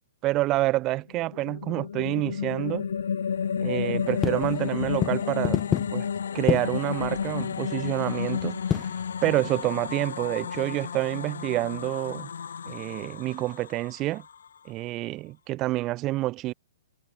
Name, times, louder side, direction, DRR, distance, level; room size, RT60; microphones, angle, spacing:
voice 1, 0.2-2.9 3.6-5.6 5.9-6.1 6.3-8.6 9.2-12.3 12.7-14.2 14.6-16.5, right 17 dB, 30° right, 1.1 m, -28 dB
sound 1, 1.1-14.5, left 7 dB, 80° left, 2.0 m, -32 dB
sound 2, 4.0-9.9, left 9 dB, 20° left, 4.1 m, -31 dB
hypercardioid pair, 140°, 0 cm